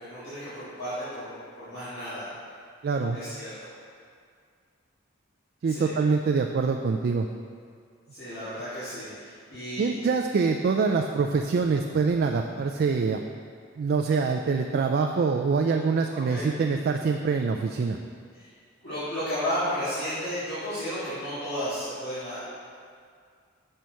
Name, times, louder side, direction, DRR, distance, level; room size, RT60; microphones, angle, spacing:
voice 1, 0.0-2.3 3.1-3.7 5.7-5.9 8.1-9.9 16.1-16.4 18.3-18.5 18.8-22.4, equal, 55° left, -14 dB, 1.9 m, -33 dB
voice 2, 2.8-3.2 5.6-7.3 9.8-13.2 13.8-18.0, right 4 dB, 50° right, 3 dB, 0.3 m, -25 dB
6.3 x 5.6 x 4.5 m, 2.1 s
head